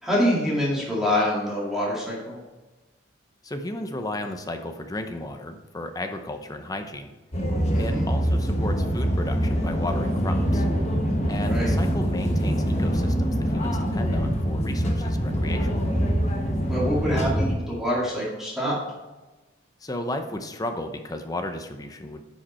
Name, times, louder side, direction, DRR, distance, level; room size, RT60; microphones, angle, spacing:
voice 1, 0.0-2.4 7.7-8.1 11.4-11.7 16.6-18.8, equal, ahead, -6 dB, 2.1 m, -25 dB
voice 2, 3.4-7.1 7.8-10.6 11.3-15.8 19.8-22.2, left 1 dB, 20° left, 6 dB, 0.7 m, -34 dB
sound 1, 7.3-17.6, equal, 35° left, 1.2 m, -24 dB
10.0 x 5.1 x 4.3 m, 1.2 s
head